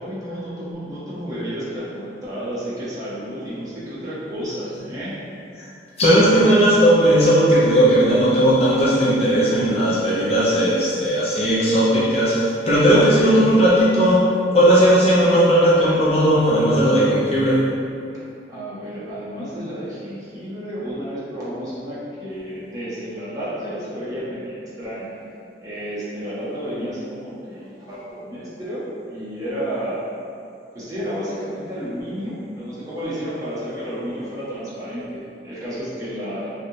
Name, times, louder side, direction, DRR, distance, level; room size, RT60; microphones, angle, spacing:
voice 1, 0.0-5.1 18.5-25.2 25.6-30.0 30.7-36.5, equal, 20° right, -11 dB, 0.9 m, -31 dB
voice 2, 6.0-14.2 14.5-17.6, equal, 35° left, -8 dB, 0.6 m, -16 dB
3.1 x 2.7 x 2.6 m, 2.5 s
head